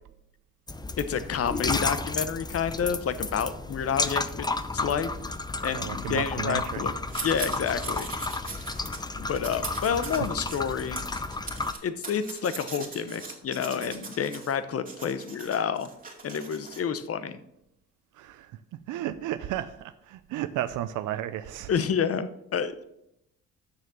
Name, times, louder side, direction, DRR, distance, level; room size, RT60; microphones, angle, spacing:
sound 1, 0.7-11.7, left 3 dB, 15° left, 0.6 m, -32 dB
voice 1, 1.0-4.5 4.7-5.1 5.6-6.9 7.2-8.1 9.2-11.0 11.8-15.9 16.2-17.4 21.7-22.8, left 7 dB, 50° left, 13 dB, 0.9 m, -29 dB
voice 2, 5.7-6.9 9.8-10.3 18.1-21.7, right 12 dB, 85° right, 11 dB, 0.5 m, -34 dB
sound 2, 7.1-9.0 9.3-14.6 14.9-16.8, right 4 dB, 30° right, 2.4 m, -40 dB
7.1 x 6.5 x 7.0 m, 0.79 s
cardioid pair, 90°, 30 cm